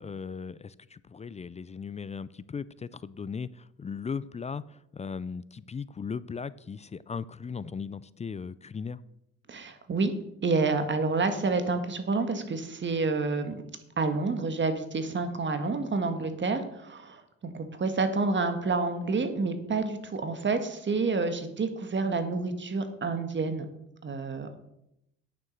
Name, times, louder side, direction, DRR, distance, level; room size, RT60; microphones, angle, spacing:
voice 1, 0.0-9.0, left 5 dB, 25° left, 0.4 m, -37 dB
voice 2, 9.5-10.1 10.4-13.6 14.0-23.7 24.0-24.6, right 3 dB, 40° right, 1.5 m, -29 dB
9.3 x 6.9 x 6.4 m
cardioid pair, 90°, 30 cm